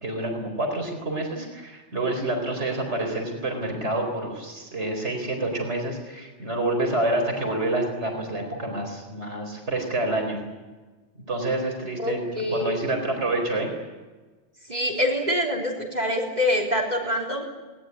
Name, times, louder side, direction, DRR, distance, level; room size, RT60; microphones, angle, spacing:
voice 1, 0.0-10.4 11.3-12.2 12.5-13.7, right 2 dB, 70° right, 3 dB, 4.7 m, -28 dB
voice 2, 12.0-12.8 14.7-17.5, left 1 dB, 35° right, 0 dB, 3.7 m, -25 dB
20.5 x 19.5 x 9.8 m, 1.3 s
omnidirectional pair, 1.2 m